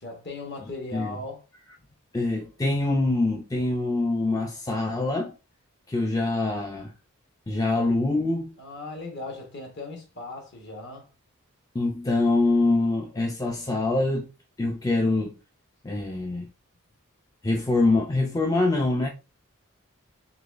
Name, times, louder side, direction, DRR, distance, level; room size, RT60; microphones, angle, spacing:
voice 1, 0.0-1.4 8.6-11.1, left 3 dB, 50° left, 1.1 m, -38 dB
voice 2, 2.1-5.3 5.9-6.9 7.5-8.5 11.7-14.3 14.6-15.4 15.8-16.5 17.4-19.1, left 2 dB, 15° left, 0.3 m, -24 dB
3.9 x 3.1 x 2.4 m
head